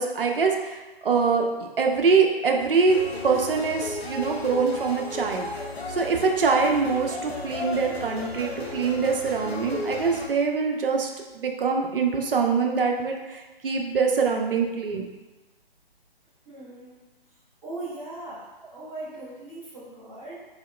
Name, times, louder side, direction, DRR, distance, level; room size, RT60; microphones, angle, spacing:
voice 1, 0.0-3.0 3.2-5.5 5.9-11.1 11.3-15.1, right 5 dB, 65° right, 2 dB, 0.6 m, -24 dB
sound 1, 2.9-10.3, left 2 dB, 90° left, 0.6 m, -35 dB
voice 2, 16.4-17.1 17.6-20.4, right 2 dB, 5° right, -13 dB, 0.6 m, -39 dB
3.6 x 2.8 x 2.3 m, 1.2 s
figure-of-eight pair, 140°, 30 cm